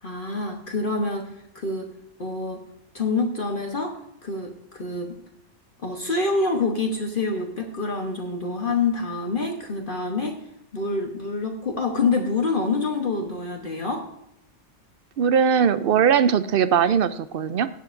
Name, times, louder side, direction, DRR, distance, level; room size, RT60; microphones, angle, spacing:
voice 1, 0.0-1.9 2.2-2.6 2.9-5.2 5.8-10.4 10.7-14.1, left 3 dB, 50° left, 2 dB, 1.2 m, -26 dB
voice 2, 15.2-17.7, right 7 dB, 60° right, 13 dB, 0.7 m, -20 dB
16.5 x 7.3 x 2.6 m, 0.79 s
omnidirectional pair, 1.2 m